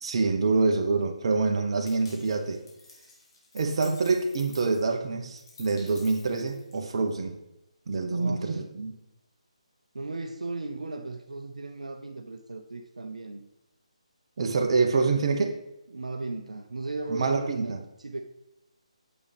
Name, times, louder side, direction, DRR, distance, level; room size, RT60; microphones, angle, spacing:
voice 1, 0.0-2.6 3.5-7.4 7.9-8.9 14.4-15.6 17.1-17.8, right 4 dB, 50° right, 4 dB, 1.1 m, -26 dB
sound 1, 1.9-7.1, left 3 dB, 40° left, 2.6 m, -51 dB
voice 2, 8.1-8.6 9.9-13.4 15.9-18.2, right 2 dB, 80° right, 4 dB, 0.7 m, -36 dB
8.7 x 6.9 x 3.4 m, 0.93 s
figure-of-eight pair, 150°, 4 cm